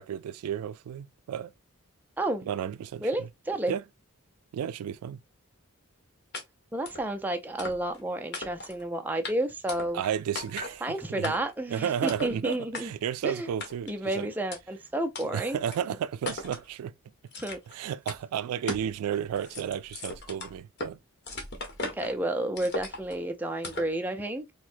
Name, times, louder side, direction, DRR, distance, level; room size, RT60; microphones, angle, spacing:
voice 1, 0.0-1.5 2.5-3.3 3.7-3.8 4.5-5.2 9.9-11.3 11.7-14.3 15.3-16.9 17.7-21.0, right 9 dB, 90° right, 0.3 m, -33 dB
voice 2, 2.2-2.5 3.0-3.7 6.7-10.0 10.8-12.9 13.2-13.5 13.9-15.6 17.4-17.6 21.9-24.5, right 1 dB, 10° right, 0.4 m, -31 dB
sound 1, 6.3-6.4 6.9-7.0 7.6-8.0 8.3-8.8 9.2-9.3 9.7-10.1 10.4-10.8 11.2-11.6 12.1-12.3 12.7-12.8 13.6-14.0 14.5-14.6 15.2-15.3 15.7-15.8 16.3-16.7 17.3-17.7 18.1-18.2 18.7-18.9 19.2-20.9 21.3-22.1 22.6-23.2 23.6-23.9, left 3 dB, 50° left, 0.9 m, -38 dB
4.4 x 2.1 x 2.5 m
head